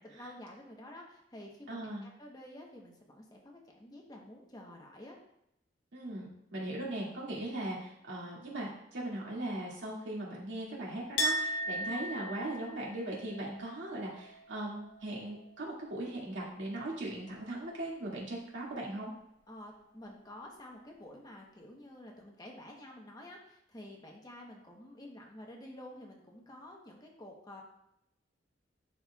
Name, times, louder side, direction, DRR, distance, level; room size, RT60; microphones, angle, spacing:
voice 1, 0.0-5.2 11.7-12.0 19.5-27.6, left 1 dB, 20° left, 0 dB, 1.0 m, -50 dB
voice 2, 1.7-2.0 5.9-19.1, right 1 dB, 80° right, -5 dB, 2.2 m, -39 dB
Chink clink, 11.2-16.7 17.0-17.9, equal, 80° left, 0.9 m, -39 dB
11.0 x 4.3 x 2.4 m, 0.78 s
head